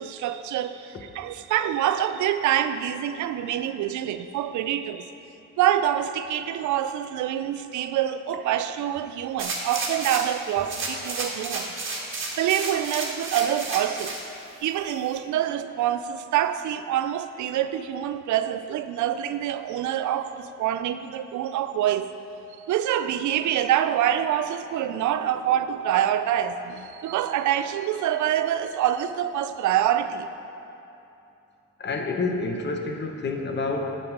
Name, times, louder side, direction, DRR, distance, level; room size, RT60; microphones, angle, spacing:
voice 1, 0.0-5.1 5.6-11.7 12.4-14.2 14.6-22.1 22.6-30.3, right 11 dB, 75° right, 0.5 m, -26 dB
sound 1, 9.4-10.4 10.7-14.2 14.7-14.8, right 3 dB, 40° right, 1.8 m, -31 dB
voice 2, 31.8-34.0, left 3 dB, 35° left, 1.0 m, -28 dB
9.3 x 6.9 x 4.7 m
cardioid pair, 90°, 30 cm